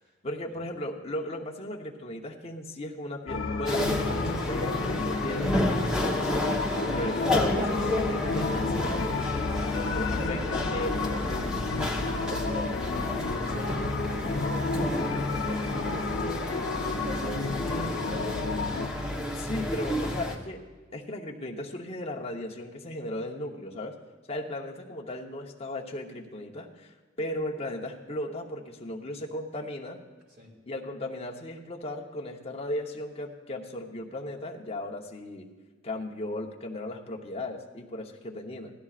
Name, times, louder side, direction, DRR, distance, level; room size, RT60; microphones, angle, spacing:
voice 1, 0.2-6.5 6.9-9.2 9.9-10.9 19.3-20.6 20.9-23.9 24.3-30.0 30.7-35.5 35.8-38.7, left 1 dB, 30° left, 0 dB, 1.0 m, -36 dB
sound 1, 3.3-18.9, left 3 dB, 70° left, 0.8 m, -31 dB
sound 2, 3.7-20.4, left 1 dB, 5° right, 1.1 m, -31 dB
voice 2, 10.0-19.0 19.5-19.7 30.4-30.5, equal, 45° right, -2 dB, 2.8 m, -44 dB
17.0 x 12.5 x 2.5 m, 1.3 s
head